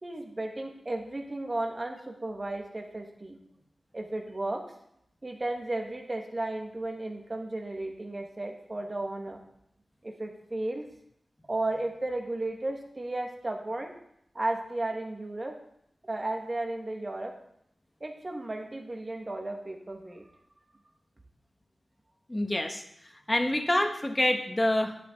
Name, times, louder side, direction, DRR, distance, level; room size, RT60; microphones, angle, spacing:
voice 1, 0.0-3.4 3.9-4.6 5.2-9.4 10.0-10.8 11.5-14.0 14.3-15.6 16.0-17.3 18.0-20.2, right 2 dB, 40° right, 2 dB, 1.9 m, -34 dB
voice 2, 22.3-22.8 23.3-25.0, left 1 dB, 20° left, 5 dB, 1.4 m, -26 dB
10.5 x 8.5 x 3.9 m, 0.74 s
cardioid pair, 45°, 0 cm